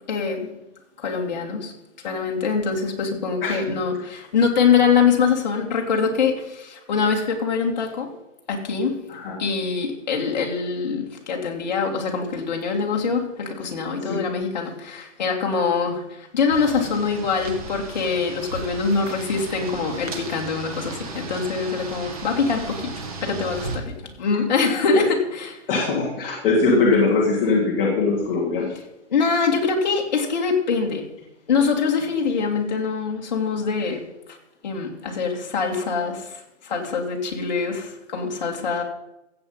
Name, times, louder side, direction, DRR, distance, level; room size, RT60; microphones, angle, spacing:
voice 1, 0.1-0.5 1.0-1.7 2.0-8.1 8.5-9.0 9.4-25.6 29.1-31.1 31.5-34.0 34.3-34.4 34.6-38.8, left 5 dB, 35° left, 1 dB, 2.3 m, -24 dB
sound 1, 16.5-23.8, right 3 dB, 30° right, 1.6 m, -35 dB
voice 2, 25.7-28.7, left 3 dB, 10° left, -6 dB, 1.3 m, -21 dB
15.0 x 7.9 x 5.5 m, 0.93 s
hypercardioid pair, 175°, 37 cm